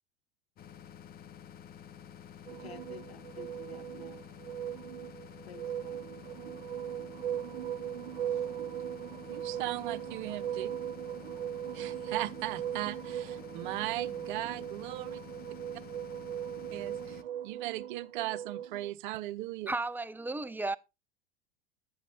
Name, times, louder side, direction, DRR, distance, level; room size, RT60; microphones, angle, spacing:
sound 1, 0.6-17.2, left 9 dB, 30° left, 0.9 m, -50 dB
sound 2, 2.5-18.9, right 10 dB, 75° right, 0.5 m, -39 dB
voice 1, 2.6-4.3 5.4-6.1, left 7 dB, 85° left, 0.8 m, -51 dB
voice 2, 9.3-10.7 11.7-15.2 16.7-19.7, right 16 dB, 50° right, 0.9 m, -38 dB
voice 3, 19.7-20.8, right 2 dB, 5° right, 0.5 m, -34 dB
11.0 x 10.0 x 3.4 m
figure-of-eight pair, 85°, 31 cm